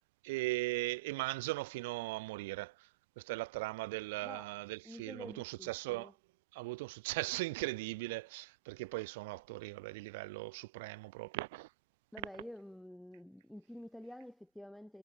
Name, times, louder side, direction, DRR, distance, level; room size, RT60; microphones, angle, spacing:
voice 1, 0.2-2.7 3.2-6.1 6.5-11.7, right 22 dB, 35° right, 0.3 m, -38 dB
voice 2, 4.8-6.1 12.1-15.0, left 1 dB, ahead, 1.6 m, -49 dB
hypercardioid pair, 165°, 0 cm